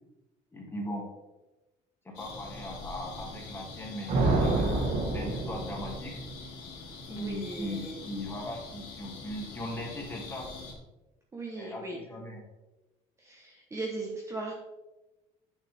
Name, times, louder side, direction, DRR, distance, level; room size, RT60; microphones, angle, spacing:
voice 1, 0.5-1.1 2.0-6.2 7.1-10.6 11.6-12.4, left 1 dB, 15° left, -2 dB, 2.1 m, -39 dB
sound 1, 2.1-10.7, left 3 dB, 85° left, 2.2 m, -44 dB
sound 2, 4.1-6.4, right 2 dB, 50° right, 1.6 m, -28 dB
voice 2, 7.1-8.0 11.3-12.0 13.2-14.5, right 2 dB, 20° right, -1 dB, 1.0 m, -38 dB
8.8 x 6.5 x 3.5 m, 1.1 s
cardioid pair, 150°, 16 cm